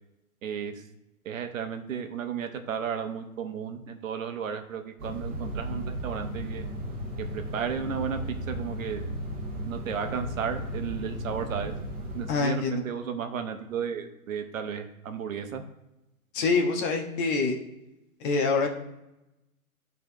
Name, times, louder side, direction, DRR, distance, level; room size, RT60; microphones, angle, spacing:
voice 1, 0.4-0.8 1.2-6.6 7.2-9.1 9.7-11.7 12.1-15.6, right 7 dB, 65° right, 7 dB, 0.9 m, -34 dB
sound 1, 5.0-12.3, right 1 dB, 20° right, 1.5 m, -35 dB
voice 2, 12.3-12.8 16.3-17.6 18.2-18.7, left 4 dB, 35° left, 2 dB, 1.3 m, -25 dB
12.0 x 4.0 x 3.0 m, 0.92 s
hypercardioid pair, 130°, 43 cm